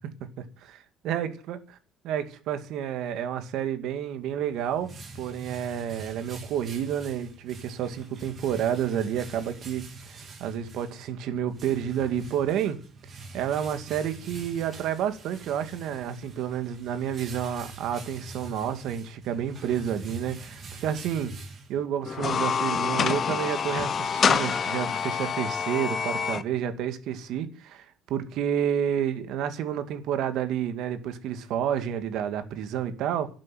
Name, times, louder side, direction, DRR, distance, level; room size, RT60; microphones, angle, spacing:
voice 1, 0.4-1.6 2.0-9.8 10.1-12.8 13.3-21.3 21.7-33.3, right 9 dB, 70° right, 2.1 m, -30 dB
sound 1, 4.3-22.1, right 3 dB, 40° right, 3.9 m, -44 dB
sound 2, 22.1-26.4, left 7 dB, 40° left, 1.1 m, -26 dB
11.5 x 8.0 x 9.2 m
cardioid pair, 120°, 0 cm